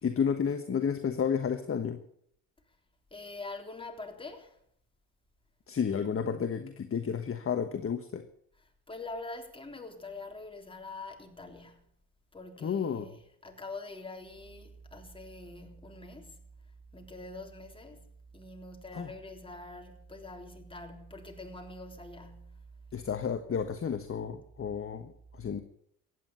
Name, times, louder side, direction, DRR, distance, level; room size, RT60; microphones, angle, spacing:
voice 1, 0.0-2.0 5.7-8.2 12.6-13.1 18.9-19.1 22.9-25.1 25.4-25.6, left 7 dB, 30° left, 1.3 m, -31 dB
voice 2, 3.1-4.6 8.9-11.9 12.3-16.4 16.9-22.6, left 2 dB, 10° left, 3.5 m, -44 dB
15.0 x 9.5 x 9.1 m
supercardioid pair, 75°, 43 cm